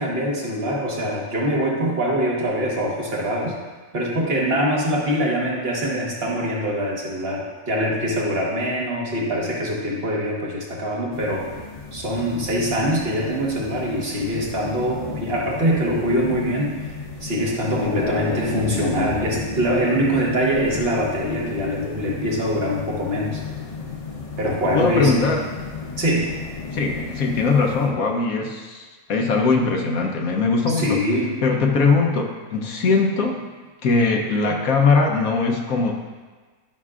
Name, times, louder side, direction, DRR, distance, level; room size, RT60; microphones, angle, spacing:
voice 1, 0.0-3.5 3.9-11.5 11.9-16.7 17.2-23.4 24.4-25.3 26.0-26.3 30.7-31.3, equal, 45° right, -3 dB, 1.5 m, -23 dB
sound 1, 11.1-27.9, left 4 dB, 45° left, 0.5 m, -33 dB
voice 2, 24.7-25.4 26.7-31.0 31.4-33.4 33.8-35.9, left 4 dB, 80° left, 1 dB, 1.2 m, -20 dB
11.5 x 6.0 x 2.4 m, 1.4 s
omnidirectional pair, 1.5 m